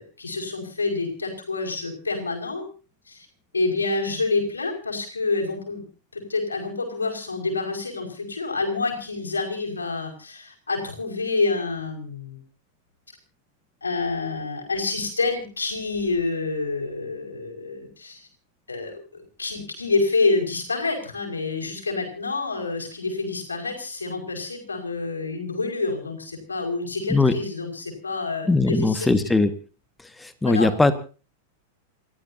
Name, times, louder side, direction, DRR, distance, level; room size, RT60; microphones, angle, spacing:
voice 1, 0.0-2.6 3.1-3.3 3.5-5.8 6.1-12.4 13.8-18.2 18.7-29.3 30.4-30.7, left 3 dB, 85° left, 2 dB, 5.5 m, -27 dB
voice 2, 28.5-29.5 30.2-30.9, left 3 dB, 10° left, 11 dB, 1.7 m, -19 dB
28.5 x 14.5 x 2.8 m, 0.36 s
figure-of-eight pair, 95°, 0 cm